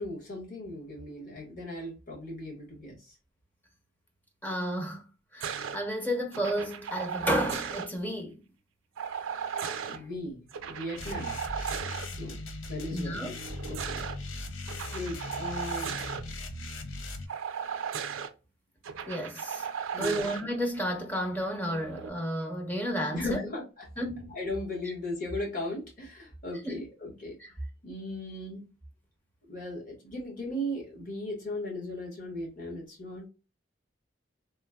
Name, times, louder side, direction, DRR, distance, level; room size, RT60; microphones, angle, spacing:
voice 1, 0.0-3.2 9.9-11.4 12.2-12.4 12.7-13.3 13.7-14.0 14.4-14.5 14.9-16.0 19.9-20.2 23.1-23.9 24.3-27.3 27.8-28.7 29.5-33.3, left 1 dB, 45° left, 1.2 m, -37 dB
voice 2, 4.4-5.0 5.3-8.4 9.5-10.1 12.9-13.3 19.0-19.7 20.0-23.4 24.0-24.3 26.6-26.8 27.4-27.5, equal, 10° left, 0.6 m, -32 dB
sound 1, 5.4-5.8 6.3-7.9 9.0-10.0 10.5-12.1 13.4-14.1 14.7-16.2 17.3-18.3 18.8-20.4 21.7-22.1, right 7 dB, 90° right, 0.4 m, -36 dB
sound 2, 11.0-17.3, left 2 dB, 90° left, 0.5 m, -39 dB
3.1 x 2.0 x 2.2 m
head